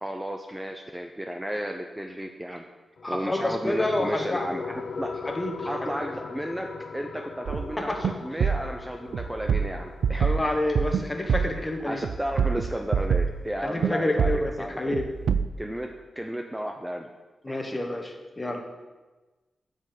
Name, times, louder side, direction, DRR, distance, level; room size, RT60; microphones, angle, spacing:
voice 1, 0.0-2.6 3.1-5.2 5.6-10.4 11.5-15.0 15.6-17.1 17.5-17.6, equal, 10° right, 4 dB, 0.6 m, -33 dB
sound 1, 3.0-14.0, left 4 dB, 60° left, 0.5 m, -40 dB
voice 2, 3.0-4.5 5.3-5.7 7.8-8.0 10.2-12.0 13.6-15.1 17.4-18.6, left 1 dB, 20° left, 4 dB, 1.3 m, -28 dB
sound 2, 7.5-7.7 8.0-8.1 8.4-8.7 9.1-11.0 11.3-11.6 12.0-13.4 13.8-13.9 14.2-14.5 14.9-15.5, right 6 dB, 85° right, 0.4 m, -25 dB
8.2 x 5.5 x 7.6 m, 1.2 s
wide cardioid pair, 100°, 0 cm